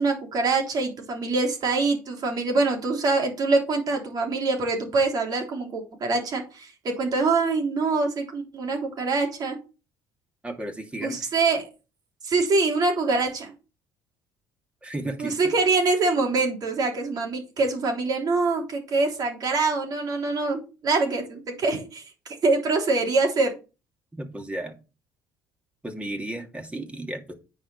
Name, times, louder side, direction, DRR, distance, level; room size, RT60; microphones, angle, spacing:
voice 1, 0.0-9.6 11.0-11.7 12.2-13.5 15.2-22.0 22.4-23.5, right 3 dB, 50° right, 2 dB, 3.5 m, -24 dB
voice 2, 10.4-11.2 14.8-15.4 24.1-24.8 25.8-27.3, right 1 dB, 15° right, 4 dB, 2.5 m, -33 dB
9.6 x 4.9 x 5.6 m, 0.31 s
supercardioid pair, 75°, 8 cm